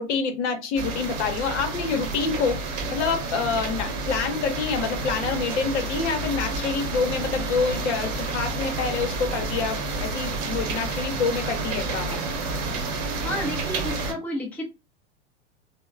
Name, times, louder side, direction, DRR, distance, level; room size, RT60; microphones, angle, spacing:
voice 1, 0.0-12.2, left 5 dB, 65° left, 0.8 m, -27 dB
sound 1, 0.8-14.1, right 3 dB, 40° right, 0.9 m, -30 dB
voice 2, 13.2-14.6, equal, 5° left, 0.5 m, -31 dB
2.9 x 2.1 x 2.4 m
hypercardioid pair, 100°, 37 cm